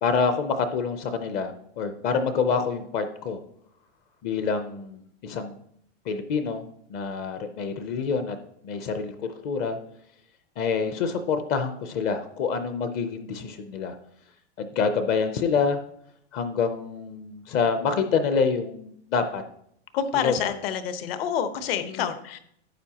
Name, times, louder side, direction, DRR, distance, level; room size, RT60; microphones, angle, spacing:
voice 1, 0.0-3.4 4.2-5.5 6.1-6.6 6.9-8.4 8.6-9.8 10.6-13.9 14.6-15.8 16.3-19.4 20.2-20.5 21.8-22.1, left 5 dB, 25° left, 9 dB, 0.5 m, -27 dB
voice 2, 19.9-22.4, left 8 dB, 60° left, 10 dB, 1.1 m, -28 dB
11.5 x 8.1 x 2.9 m, 0.70 s
supercardioid pair, 165°, 32 cm